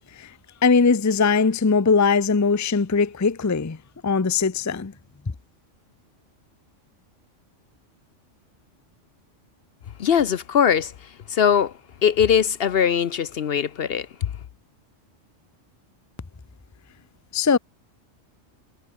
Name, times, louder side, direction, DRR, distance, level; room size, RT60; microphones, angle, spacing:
voice 1, 0.6-3.8 4.0-4.9 17.3-17.6, left 5 dB, 20° left, 0.5 m, -20 dB
voice 2, 10.0-11.7 12.0-14.3, left 8 dB, 60° left, 0.8 m, -21 dB
omnidirectional pair, 1.3 m